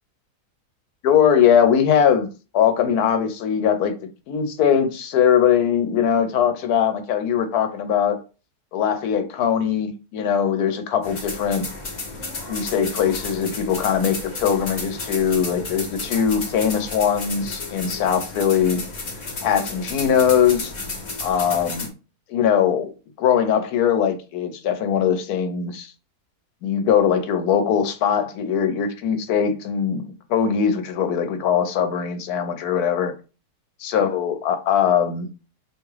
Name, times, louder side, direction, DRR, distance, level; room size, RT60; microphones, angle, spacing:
voice 1, 1.0-2.3 2.5-4.0 4.3-8.2 8.7-11.6 12.5-18.8 19.4-20.7 21.2-21.9 22.3-22.9 23.2-25.9 26.6-33.1 33.8-35.3, left 8 dB, 90° left, 1.2 m, -21 dB
sound 1, 11.0-21.9, left 3 dB, 40° left, 0.7 m, -32 dB
3.5 x 2.9 x 3.2 m
omnidirectional pair, 1.6 m